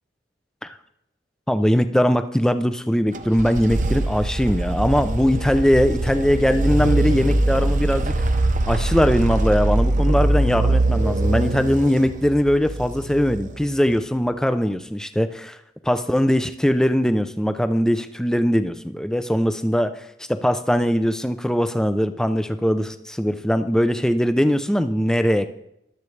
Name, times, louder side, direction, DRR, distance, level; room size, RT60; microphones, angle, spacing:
voice 1, 1.5-8.2 8.6-15.6 15.8-25.5, equal, 5° left, 9 dB, 0.5 m, -21 dB
sound 1, 3.1-13.9, right 2 dB, 45° right, 0.8 m, -22 dB
23.0 x 8.2 x 3.3 m, 0.81 s
head